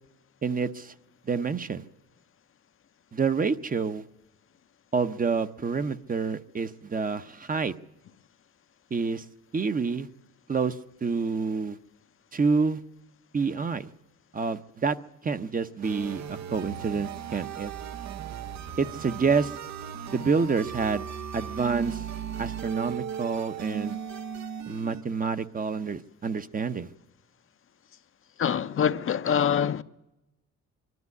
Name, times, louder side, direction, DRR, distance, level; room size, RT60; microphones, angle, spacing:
voice 1, 0.4-0.9 1.3-1.8 3.1-4.0 4.9-7.7 8.9-9.2 9.5-10.1 10.5-11.8 12.3-12.8 13.3-13.9 14.3-15.0 15.2-17.7 18.8-19.5 20.1-21.1 21.3-22.0 22.4-24.0 24.7-26.9, right 5 dB, 30° right, 0.7 m, -28 dB
sound 1, 15.8-25.0, right 8 dB, 65° right, 0.8 m, -37 dB
voice 2, 28.4-29.8, left 8 dB, 45° left, 0.7 m, -25 dB
22.5 x 12.5 x 9.5 m
cardioid pair, 90°, 30 cm